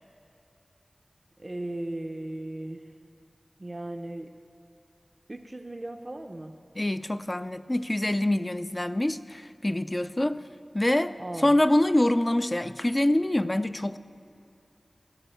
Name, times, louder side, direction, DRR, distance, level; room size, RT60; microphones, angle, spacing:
voice 1, 1.4-2.9 3.6-4.3 5.3-6.5 11.2-11.6, right 1 dB, 35° right, 5 dB, 0.6 m, -37 dB
voice 2, 6.8-10.4 10.7-11.1 11.4-14.0, left 1 dB, 25° left, 13 dB, 0.4 m, -25 dB
15.5 x 6.2 x 9.0 m, 2.6 s
wide cardioid pair, 70°, 0 cm